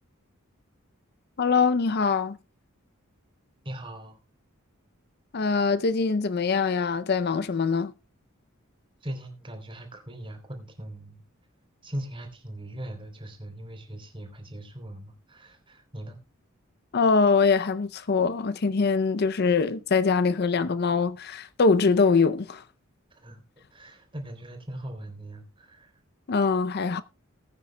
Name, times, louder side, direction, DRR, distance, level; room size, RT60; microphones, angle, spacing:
voice 1, 1.4-2.4 5.3-7.9 16.9-22.6 26.3-27.0, left 4 dB, 50° left, 0.5 m, -23 dB
voice 2, 3.6-4.2 9.0-11.2 11.8-16.2 23.1-23.4 23.7-25.9, right 1 dB, 25° right, 3.3 m, -40 dB
20.5 x 9.3 x 2.2 m
head